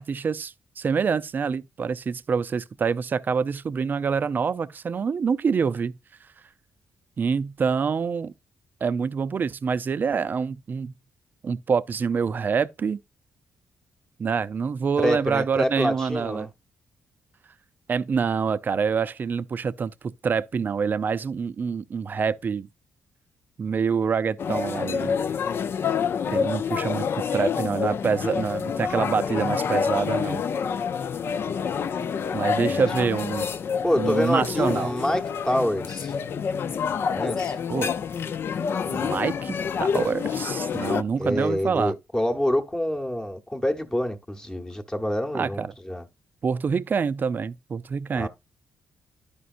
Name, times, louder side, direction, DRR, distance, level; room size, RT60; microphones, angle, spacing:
voice 1, 0.0-5.9 7.2-8.3 8.8-10.9 11.4-13.0 14.2-16.5 17.9-22.7 23.6-25.1 26.3-30.4 32.3-33.5 34.0-34.9 37.7-37.9 38.9-41.9 45.3-45.7 46.4-48.3, right 6 dB, 45° right, 0.4 m, -26 dB
voice 2, 15.0-16.5 32.7-32.8 33.8-36.2 37.1-37.6 41.2-46.1 48.2-48.3, left 1 dB, 15° left, 1.0 m, -26 dB
sound 1, 24.4-41.0, left 6 dB, 55° left, 0.4 m, -27 dB
11.5 x 5.2 x 2.5 m
cardioid pair, 80°, 5 cm